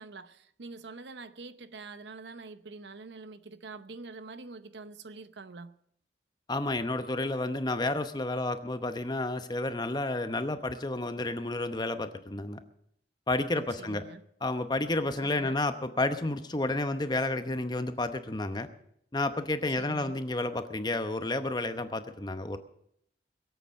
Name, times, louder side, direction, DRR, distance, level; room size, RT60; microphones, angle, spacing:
voice 1, 0.0-5.7 13.8-14.2 15.2-15.6 19.8-20.2, right 3 dB, 75° right, 0.8 m, -45 dB
voice 2, 6.5-12.6 13.3-14.0 14.4-18.7 19.1-22.6, left 2 dB, 25° left, 0.8 m, -31 dB
22.0 x 8.2 x 6.4 m
head